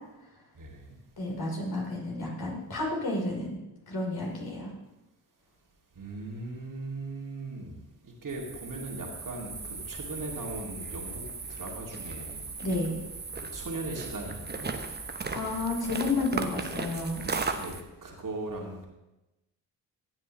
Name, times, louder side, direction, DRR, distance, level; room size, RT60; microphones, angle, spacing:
voice 1, 1.2-3.6 3.9-4.7 12.6-13.0 15.3-17.3, left 2 dB, 45° left, -2 dB, 4.2 m, -31 dB
voice 2, 6.0-7.8 8.2-11.2 11.5-12.4 13.3-14.7 17.5-17.7 18.0-18.9, right 2 dB, 40° right, -1 dB, 2.6 m, -38 dB
sound 1, 8.3-17.8, right 4 dB, 20° right, 1.1 m, -37 dB
15.0 x 8.9 x 3.2 m, 1.0 s
hypercardioid pair, 40°, 49 cm